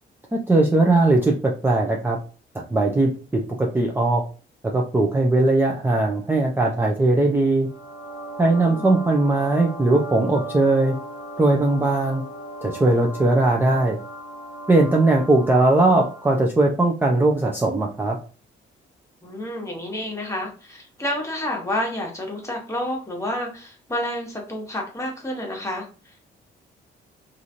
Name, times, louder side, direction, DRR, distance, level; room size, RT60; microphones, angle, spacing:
voice 1, 0.3-2.2 2.7-4.2 4.7-7.7 8.4-10.9 11.4-12.2 12.6-14.0 14.7-18.2, right 2 dB, 10° right, -1 dB, 0.5 m, -19 dB
sound 1, 7.6-16.5, right 1 dB, 55° left, 0.6 m, -37 dB
voice 2, 8.4-8.8 19.2-26.3, left 1 dB, 15° left, 0 dB, 1.1 m, -30 dB
2.9 x 2.5 x 2.7 m, 0.38 s
cardioid pair, 90°, 20 cm